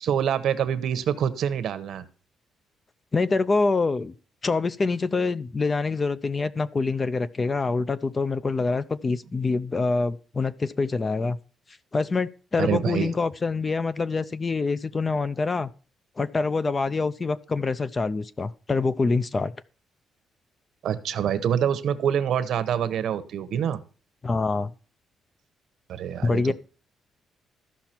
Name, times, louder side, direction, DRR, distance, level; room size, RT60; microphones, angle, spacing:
voice 1, 0.0-2.0 12.6-13.1 20.8-23.8 25.9-26.5, right 9 dB, 65° right, 0.9 m, -26 dB
voice 2, 3.1-4.1 4.4-11.4 11.9-15.7 16.2-19.5 24.2-24.7 26.2-26.5, left 3 dB, 25° left, 0.4 m, -25 dB
14.0 x 5.8 x 4.4 m
cardioid pair, 155°, 0 cm